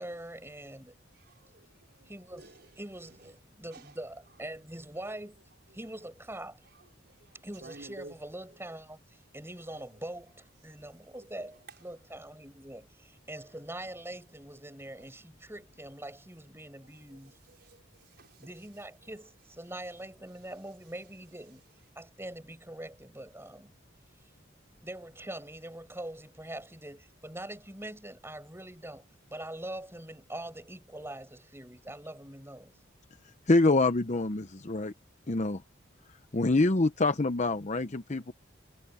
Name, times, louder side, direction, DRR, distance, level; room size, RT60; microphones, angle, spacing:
voice 1, 0.0-1.0 2.1-2.4 2.8-5.4 5.7-6.6 7.4-9.0 9.3-17.4 18.4-21.6 22.0-23.7 24.8-29.0 29.3-32.8, right 1 dB, 10° right, 7.1 m, -43 dB
voice 2, 1.1-2.1 2.4-2.7 3.0-3.3 3.7-3.9 5.1-5.2 5.7-5.9 6.7-8.1 9.7-10.0 11.0-11.3 11.7-11.8 15.0-15.1 17.1-18.5 19.0-19.1, right 2 dB, 55° right, 5.3 m, -53 dB
voice 3, 33.5-34.9 35.3-35.6 36.3-38.3, left 2 dB, 35° left, 0.8 m, -26 dB
head